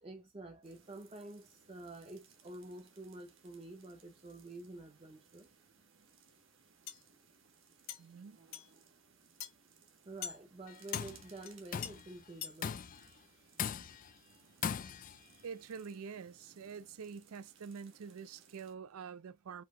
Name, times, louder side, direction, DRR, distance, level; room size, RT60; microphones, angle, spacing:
voice 1, 0.0-5.5 10.0-12.8, right 2 dB, 25° right, 0.5 m, -49 dB
sound 1, 0.6-18.7, right 6 dB, 60° right, 1.2 m, -64 dB
sound 2, 6.9-7.0 7.9-8.0 8.5-8.7 9.4-9.5 10.2-10.4 10.9-11.1 11.4-11.5 11.8-11.9 12.4-12.6, left 10 dB, 75° left, 0.8 m, -42 dB
voice 2, 8.0-8.4 15.4-19.6, right 6 dB, 85° right, 0.4 m, -46 dB
Tools, 10.7-11.2 11.7-12.1 12.6-13.1 13.6-14.1 14.6-15.2, left 7 dB, 40° left, 0.3 m, -39 dB
4.8 x 2.7 x 3.7 m
head